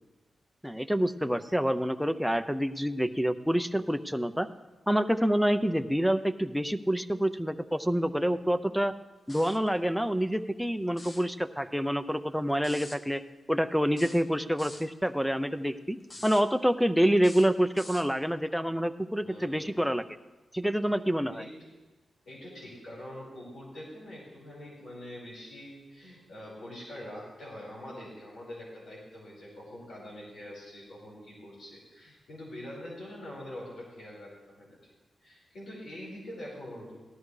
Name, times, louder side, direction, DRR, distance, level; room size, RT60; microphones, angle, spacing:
voice 1, 0.6-4.5 4.9-8.9 9.3-13.2 13.5-16.0 16.2-20.0 20.5-21.4, equal, ahead, 12 dB, 0.5 m, -27 dB
sound 1, 9.3-9.7 10.9-11.3 12.6-13.0 14.0-14.9 16.0-16.5 17.2-18.1, left 2 dB, 30° left, 0.9 m, -46 dB
voice 2, 19.2-19.8 21.3-21.5 22.3-34.8 35.2-37.0, left 1 dB, 80° left, -5 dB, 4.8 m, -44 dB
18.0 x 13.0 x 3.2 m, 1.2 s
wide cardioid pair, 115°, 0 cm